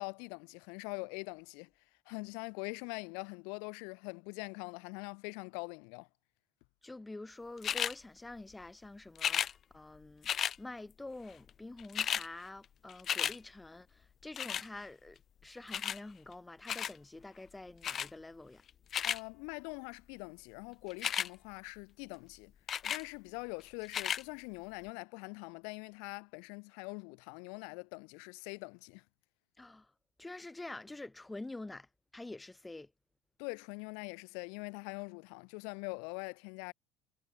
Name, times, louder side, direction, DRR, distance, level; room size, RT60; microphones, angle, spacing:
voice 1, 0.0-1.7 2.1-6.1 19.0-22.5 22.8-29.0 33.4-36.7, left 40 dB or more, 80° left, 6.5 m, -43 dB
voice 2, 6.8-10.3 10.6-18.6 29.6-29.9 30.2-31.9 32.1-32.9, left 2 dB, 10° left, 4.7 m, -47 dB
sound 1, 7.6-7.9 9.1-9.5 10.2-10.6 11.5-11.6 11.8-12.3 12.6-13.4 14.4-14.7 15.7-16.0 16.7-17.0 17.8-18.1 18.7-19.2 20.9-21.3 22.7-23.0 23.8-24.2 24.9-25.0, left 9 dB, 40° left, 0.4 m, -33 dB
supercardioid pair, 100°, 0 cm